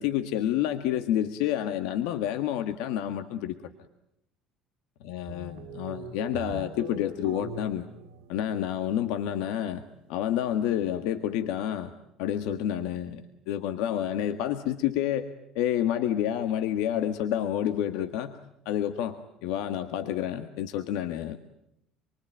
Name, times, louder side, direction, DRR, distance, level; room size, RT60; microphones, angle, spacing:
voice 1, 0.0-3.6 5.0-7.9 8.3-9.8 10.1-11.9 12.2-18.4 18.7-21.4, left 11 dB, 70° left, 9 dB, 1.6 m, -29 dB
sound 1, 5.3-8.9, right 4 dB, 75° right, 2.4 m, -41 dB
27.5 x 23.5 x 9.1 m, 0.79 s
cardioid pair, 180°, 0 cm